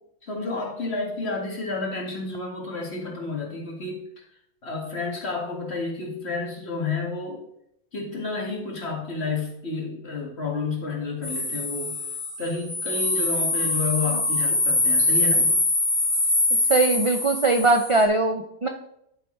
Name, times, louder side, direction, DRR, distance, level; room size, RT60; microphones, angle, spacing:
voice 1, 0.2-4.0 4.6-7.4 7.9-11.9 12.4-15.5, left 4 dB, 45° left, -1 dB, 2.2 m, -30 dB
sound 1, 11.2-18.0, left 2 dB, 20° right, 3.1 m, -23 dB
voice 2, 16.7-18.7, right 2 dB, 50° right, 4 dB, 0.3 m, -21 dB
11.0 x 7.8 x 3.3 m, 0.77 s
omnidirectional pair, 1.5 m